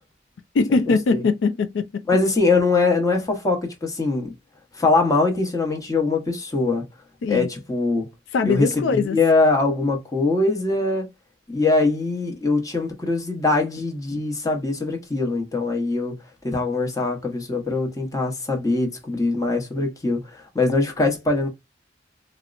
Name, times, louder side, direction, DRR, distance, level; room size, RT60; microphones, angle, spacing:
voice 1, 0.5-2.0 7.2-7.5 8.3-9.2, left 4 dB, 85° left, 0.4 m, -21 dB
voice 2, 2.1-4.3 4.7-6.8 7.3-8.1 8.4-11.0 11.5-16.1 16.4-21.5, left 3 dB, 20° left, 0.8 m, -22 dB
4.2 x 2.0 x 2.4 m
head